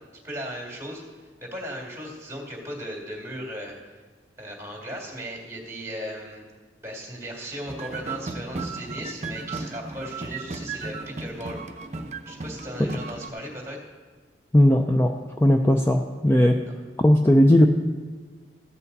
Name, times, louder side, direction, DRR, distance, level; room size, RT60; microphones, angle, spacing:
voice 1, 0.2-3.7 4.4-6.4 6.8-11.6 12.3-13.8 16.6-16.7, equal, 15° right, 0 dB, 2.3 m, -37 dB
sound 1, 7.7-13.3, right 3 dB, 40° right, 0.7 m, -35 dB
voice 2, 14.5-15.1 15.4-16.6 17.0-17.7, left 1 dB, 15° left, 3 dB, 0.4 m, -17 dB
14.5 x 8.2 x 4.1 m, 1.4 s
head